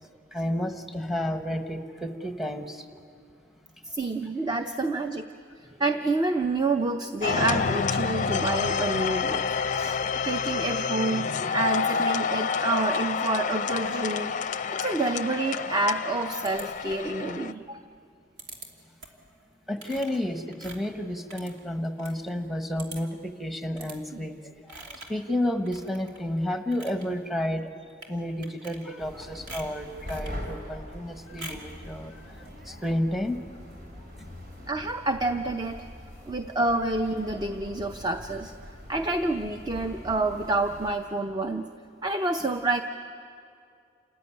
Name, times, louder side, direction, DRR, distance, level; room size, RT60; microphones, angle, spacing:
voice 1, 0.3-2.9 19.7-27.7 28.1-33.4 34.2-34.3 34.6-34.7, left 1 dB, ahead, 6 dB, 1.1 m, -31 dB
voice 2, 3.8-5.3 5.8-14.3 14.7-17.8 24.1-24.2 34.7-35.9 36.3-38.5 38.9-41.7 42.0-42.8, right 2 dB, 20° right, 7 dB, 0.6 m, -28 dB
sound 1, 7.2-17.5, left 6 dB, 40° left, 0.5 m, -28 dB
sound 2, 16.4-17.1 18.4-18.7 19.0-19.3 19.8-22.2 22.5-22.6 22.8-23.2 23.8-24.0 24.7-25.2 25.6-26.2 26.6-27.0 27.9-28.1 28.4-29.1 29.5-30.4 31.4-31.7, right 2 dB, 75° right, 2.7 m, -44 dB
sound 3, 29.0-40.9, equal, 50° right, 4.0 m, -43 dB
28.5 x 14.5 x 9.7 m, 2.4 s
head